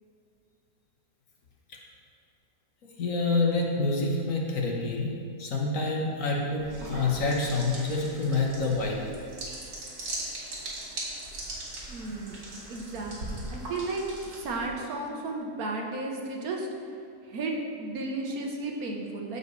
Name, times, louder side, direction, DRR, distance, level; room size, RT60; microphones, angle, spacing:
voice 1, 3.0-5.1 5.4-9.0, left 3 dB, 60° left, -2 dB, 1.6 m, -27 dB
sound 1, 6.6-14.7, right 1 dB, 85° right, 2.4 m, -39 dB
voice 2, 11.9-12.4 12.7-14.0 14.3-16.7 17.2-19.4, right 2 dB, 70° right, 1 dB, 1.4 m, -34 dB
14.0 x 5.6 x 3.2 m, 2.5 s
omnidirectional pair, 1.6 m